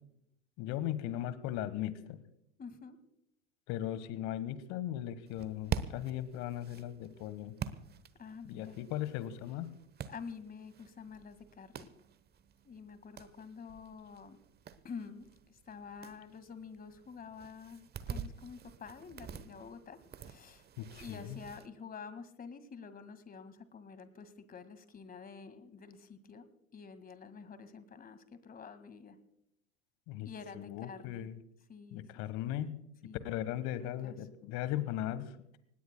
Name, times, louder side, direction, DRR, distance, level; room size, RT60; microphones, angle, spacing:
voice 1, 0.6-2.2 3.7-7.5 8.5-9.7 20.8-21.4 30.1-30.3 30.5-31.4 31.9-32.7 33.2-35.3, left 12 dB, 55° left, 15 dB, 1.5 m, -38 dB
voice 2, 2.6-3.0 8.2-8.8 10.1-11.9 12.7-14.4 14.8-20.7 21.0-26.5 26.7-29.2 30.2-31.3 31.7-32.5 33.0-33.3 34.0-34.2, left 5 dB, 25° left, 12 dB, 2.0 m, -48 dB
sound 1, 5.3-21.7, right 7 dB, 30° right, 1.1 m, -46 dB
25.0 x 19.5 x 2.3 m, 0.76 s
hypercardioid pair, 80°, 34 cm